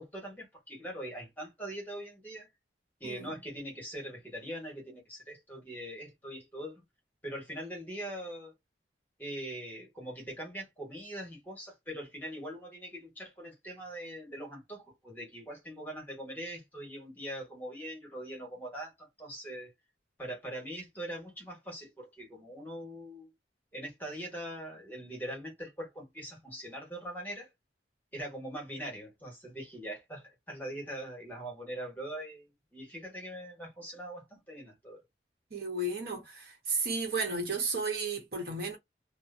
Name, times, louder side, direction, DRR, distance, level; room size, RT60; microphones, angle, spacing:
voice 1, 0.0-2.5 3.0-6.8 7.2-8.5 9.2-19.7 20.2-23.3 23.7-27.5 28.1-35.0, right 1 dB, 10° left, 1.1 m, -42 dB
voice 2, 3.0-3.4 35.5-38.8, right 3 dB, 60° right, 1.0 m, -33 dB
2.8 x 2.0 x 2.4 m
head